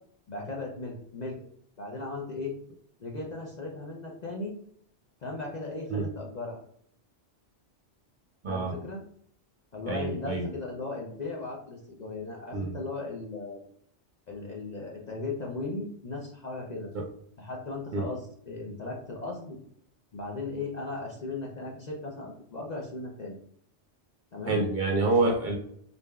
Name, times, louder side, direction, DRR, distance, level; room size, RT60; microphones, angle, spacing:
voice 1, 0.3-1.4 1.8-2.5 3.0-4.6 5.2-6.6 8.5-9.0 9.7-13.6 14.3-16.9 17.4-19.6 20.1-23.4 24.3-24.6, left 3 dB, 45° left, -1 dB, 0.6 m, -37 dB
voice 2, 8.4-8.8 9.9-10.5 12.5-12.7 16.9-17.0 17.9-18.1 24.5-25.6, right 3 dB, 50° right, -1 dB, 0.7 m, -27 dB
3.9 x 3.4 x 2.3 m, 0.66 s
omnidirectional pair, 1.2 m